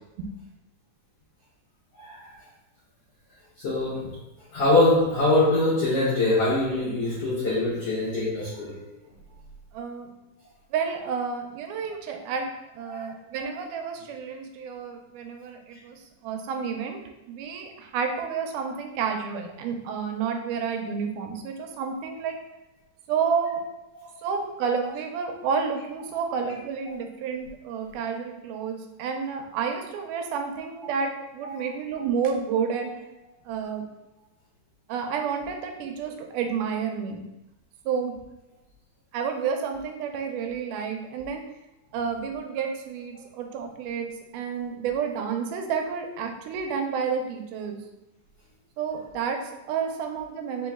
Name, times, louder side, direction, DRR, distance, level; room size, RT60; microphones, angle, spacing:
voice 1, 2.0-2.3 3.6-4.1 4.5-8.8 12.9-13.0 24.0-24.1 31.4-31.7, left 2 dB, 55° left, -10 dB, 1.9 m, -23 dB
voice 2, 9.7-10.1 10.7-17.0 17.3-22.4 23.1-23.6 24.2-32.9 33.5-33.8 34.9-37.2 37.9-38.1 39.1-41.5 41.9-47.8 48.8-50.7, right 6 dB, 80° right, 4 dB, 2.1 m, -30 dB
4.9 x 3.0 x 3.5 m, 0.93 s
omnidirectional pair, 3.7 m